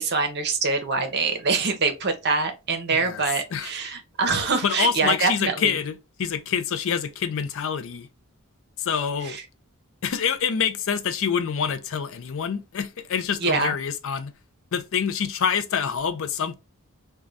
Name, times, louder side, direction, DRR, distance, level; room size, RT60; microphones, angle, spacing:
voice 1, 0.0-5.7 9.2-9.4 13.4-13.7, right 4 dB, 50° right, 0.7 m, -24 dB
sound 1, 4.1-4.7, equal, 25° left, 1.1 m, -46 dB
voice 2, 4.6-5.9 6.2-8.1 8.8-9.4 10.0-14.3 14.7-16.5, left 7 dB, 60° left, 0.4 m, -26 dB
2.5 x 2.2 x 3.2 m
head